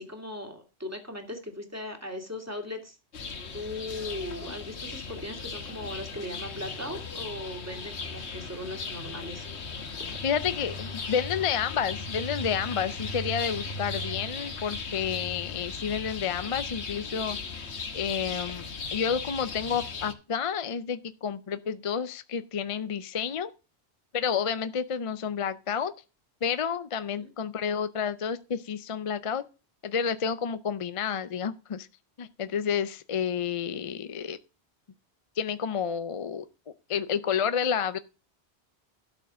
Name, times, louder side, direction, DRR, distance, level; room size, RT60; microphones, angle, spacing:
voice 1, 0.0-9.5 10.1-10.2 27.1-27.3, left 1 dB, 15° right, 2.2 m, -38 dB
sound 1, 3.1-20.1, left 4 dB, 75° left, 1.5 m, -37 dB
voice 2, 10.2-17.4 17.9-23.5 24.1-25.9 26.4-29.4 29.8-31.9 32.2-34.4 35.4-36.4 36.9-38.0, left 7 dB, 45° left, 0.4 m, -30 dB
12.5 x 4.7 x 6.2 m
omnidirectional pair, 1.1 m